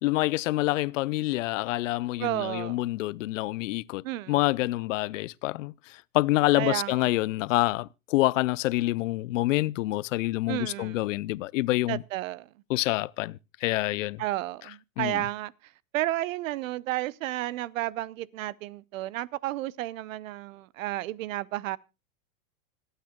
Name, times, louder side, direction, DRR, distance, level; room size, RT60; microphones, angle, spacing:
voice 1, 0.0-5.7 6.1-12.0 12.7-14.2 15.0-15.2, left 18 dB, 60° left, 0.6 m, -27 dB
voice 2, 2.2-2.8 4.0-4.4 6.5-7.0 10.5-11.0 11.9-12.5 14.2-15.5 15.9-21.8, right 15 dB, 65° right, 0.8 m, -32 dB
26.5 x 9.1 x 2.2 m
hypercardioid pair, 130°, 43 cm